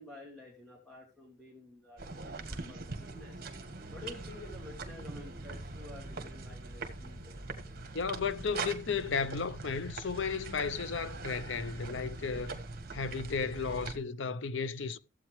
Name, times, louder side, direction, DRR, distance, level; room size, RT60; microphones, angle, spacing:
voice 1, 0.0-3.4 3.9-7.4, left 2 dB, ahead, 2.6 m, -50 dB
sound 1, 2.0-14.0, right 3 dB, 55° right, 1.6 m, -42 dB
voice 2, 7.9-12.6 12.9-15.0, left 5 dB, 75° left, 0.7 m, -34 dB
15.0 x 8.6 x 3.2 m
head